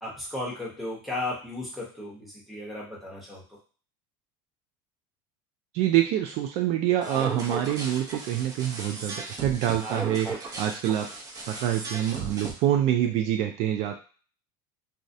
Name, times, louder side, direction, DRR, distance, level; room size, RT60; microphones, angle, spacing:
voice 1, 0.0-3.6, left 2 dB, ahead, -5 dB, 0.9 m, -35 dB
voice 2, 5.7-11.1 11.5-14.0, right 11 dB, 55° right, 4 dB, 0.4 m, -26 dB
sound 1, 7.0-12.5, right 3 dB, 30° right, 0.7 m, -36 dB
2.3 x 2.1 x 2.6 m, 0.38 s
supercardioid pair, 130°, 13 cm